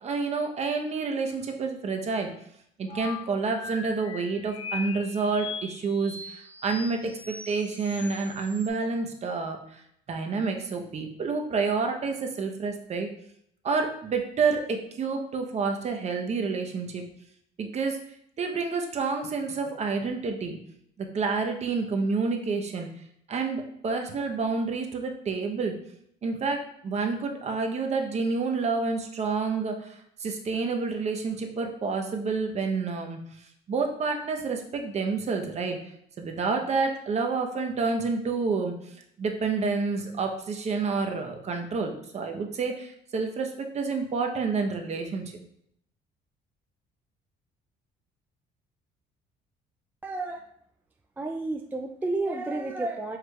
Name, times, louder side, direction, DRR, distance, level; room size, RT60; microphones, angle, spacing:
voice 1, 0.0-2.3 2.8-9.6 10.1-13.1 13.6-17.0 17.6-18.0 18.4-20.6 21.0-22.9 23.3-25.7 26.2-29.9 30.2-33.2 33.7-35.8 36.2-38.7 39.2-45.3, right 4 dB, 40° right, 4 dB, 0.8 m, -29 dB
sound 1, 2.9-8.7, left 5 dB, 30° left, 0.8 m, -40 dB
voice 2, 50.0-50.4 51.2-53.2, right 2 dB, 10° right, 3 dB, 0.3 m, -31 dB
4.8 x 4.5 x 2.3 m, 0.71 s
cardioid pair, 110°, 17 cm